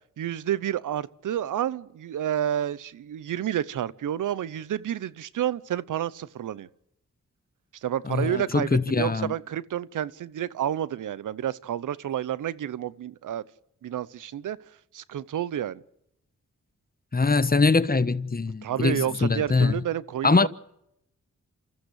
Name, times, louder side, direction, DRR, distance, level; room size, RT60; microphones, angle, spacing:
voice 1, 0.2-6.7 7.8-13.4 13.8-14.6 14.9-15.8 18.6-20.5, right 10 dB, 90° right, 0.8 m, -30 dB
voice 2, 8.1-9.3 17.1-19.8 20.2-20.5, left 4 dB, 30° left, 1.2 m, -23 dB
27.5 x 14.5 x 8.1 m
cardioid pair, 50°, 30 cm